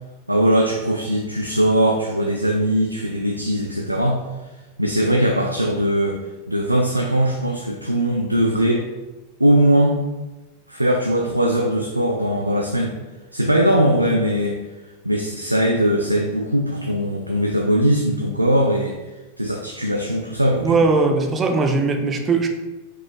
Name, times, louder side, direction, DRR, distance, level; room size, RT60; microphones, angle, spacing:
voice 1, 0.3-4.2 4.8-6.2 6.5-8.8 9.4-10.0 10.7-12.9 13.3-14.6 15.0-18.9 19.4-20.8, right 1 dB, 85° right, 1 dB, 0.3 m, -20 dB
voice 2, 20.6-22.5, right 3 dB, 20° right, 4 dB, 0.5 m, -19 dB
4.8 x 3.7 x 2.4 m, 1.1 s
figure-of-eight pair, 90°, 0 cm